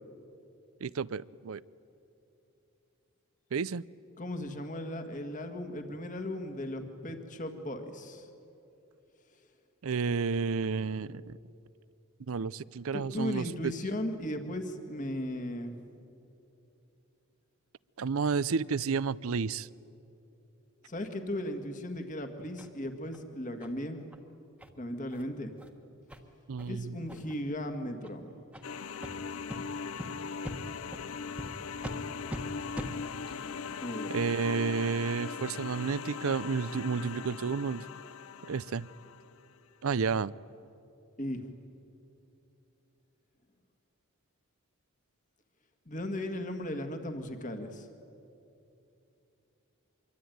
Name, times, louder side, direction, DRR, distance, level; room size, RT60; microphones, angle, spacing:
voice 1, 0.8-1.6 3.5-3.8 9.8-11.4 12.3-13.7 18.0-19.7 26.5-27.0 34.1-37.8 38.5-38.9 39.8-40.3, right 5 dB, 70° right, 20 dB, 0.5 m, -31 dB
voice 2, 4.2-8.3 12.9-15.8 20.9-24.0 24.8-25.5 26.7-28.5 33.8-34.2 41.2-41.5 45.9-47.9, left 1 dB, 35° left, 7 dB, 1.9 m, -37 dB
sound 1, 22.6-22.7 23.1-23.2 23.6-23.7 24.1-24.2 24.6-24.7 25.1-25.2 25.6-25.7 26.1-26.2 26.6-26.7 27.1-27.4 28.0-28.1 28.5-28.6 29.0-29.1 29.5-29.6 30.0-30.1 30.4-30.6 30.9-31.0 31.4-31.5 31.8-32.0 32.3-32.4 32.7-32.9, equal, 5° right, 1.4 m, -41 dB
sound 2, 28.6-39.4, left 5 dB, 70° left, 0.6 m, -40 dB
25.0 x 23.5 x 9.4 m, 2.8 s
head